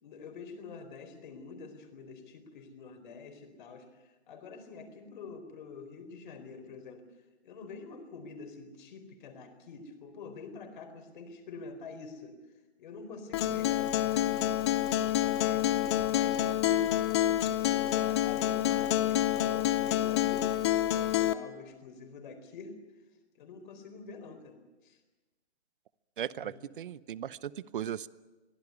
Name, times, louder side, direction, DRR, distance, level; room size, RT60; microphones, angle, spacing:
voice 1, 0.0-7.0 7.4-12.4 12.8-14.5 15.0-16.9 17.6-20.5 20.9-22.7 23.4-24.6 24.8-25.0 26.4-26.6, left 4 dB, 45° left, 7 dB, 4.3 m, -46 dB
Acoustic guitar, 13.3-21.3, left 12 dB, 25° left, 0.7 m, -28 dB
voice 2, 26.2-28.1, right 10 dB, 50° right, 19 dB, 0.8 m, -37 dB
23.5 x 16.0 x 9.6 m, 1.2 s
hypercardioid pair, 150°, 33 cm